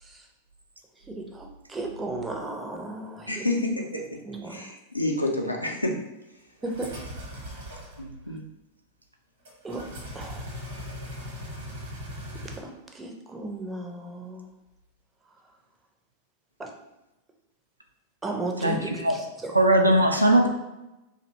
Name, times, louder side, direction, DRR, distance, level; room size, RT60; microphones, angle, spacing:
voice 1, 1.1-3.4 4.3-4.6 6.6-6.9 9.6-9.8 10.1-10.5 12.6-14.5 16.6-16.7 18.2-19.5, right 2 dB, 15° right, 1 dB, 0.4 m, -35 dB
voice 2, 3.3-4.2 4.5-6.0 8.0-8.4, left 1 dB, 85° left, 1 dB, 0.4 m, -29 dB
sound 1, 6.6-8.0 9.4-12.6, equal, 60° right, 0.9 m, -39 dB
voice 3, 18.6-19.2 19.5-20.5, right 1 dB, 85° right, 3 dB, 0.3 m, -20 dB
2.5 x 2.0 x 2.8 m, 0.97 s
figure-of-eight pair, 90°, 0 cm